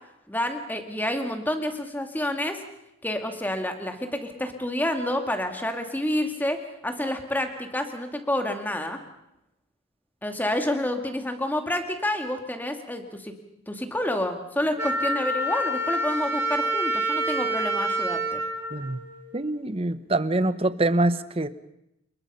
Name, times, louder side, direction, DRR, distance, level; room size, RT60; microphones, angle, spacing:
voice 1, 0.3-2.6 3.0-6.6 6.8-9.0 10.2-13.3 13.7-18.4, left 1 dB, 10° left, 5 dB, 2.2 m, -28 dB
Wind instrument woodwind instrument, 14.8-19.6, right 1 dB, 15° right, 2.8 m, -28 dB
voice 2, 19.3-21.5, right 2 dB, 30° right, 13 dB, 1.0 m, -25 dB
29.0 x 21.0 x 5.6 m, 0.83 s
head